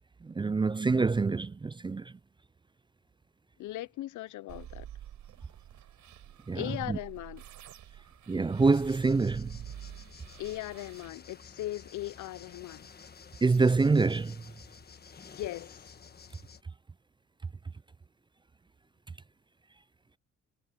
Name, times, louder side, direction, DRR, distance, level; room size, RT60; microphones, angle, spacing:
voice 1, 0.2-2.1 6.5-7.0 8.3-9.6 13.4-14.4, right 4 dB, 15° right, 0.4 m, -26 dB
voice 2, 3.6-4.9 6.5-7.4 10.4-12.9 15.3-15.9, left 16 dB, 75° left, 0.6 m, -38 dB
sound 1, 4.5-11.1, right 11 dB, 75° right, 7.3 m, -48 dB
sound 2, 8.6-16.6, left 6 dB, 30° left, 1.3 m, -52 dB
cardioid pair, 90°, 30 cm